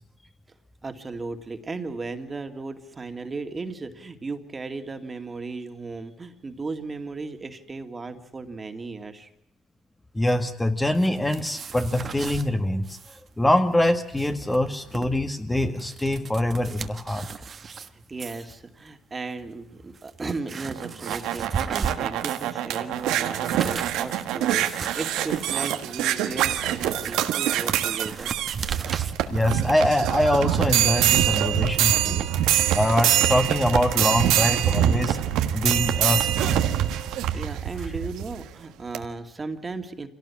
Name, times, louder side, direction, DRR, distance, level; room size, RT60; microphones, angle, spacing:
voice 1, 0.8-9.3 17.9-28.3 37.1-40.1, right 3 dB, 30° right, 7 dB, 2.4 m, -36 dB
voice 2, 10.1-13.0 13.4-17.3 29.3-32.2 32.7-35.2 35.5-36.6, left 1 dB, 15° left, 6 dB, 1.8 m, -24 dB
sound 1, 10.9-12.5 12.8-13.2 13.5-13.6 14.0-15.1 15.6-17.9 18.2-18.5 19.3-19.4 19.9-22.6 22.9-29.1, right 6 dB, 45° right, 1.5 m, -36 dB
sound 2, 20.7-38.4 38.9-39.0, right 11 dB, 85° right, 1.5 m, -24 dB
25.5 x 17.5 x 8.6 m, 0.75 s
cardioid pair, 80°, 0 cm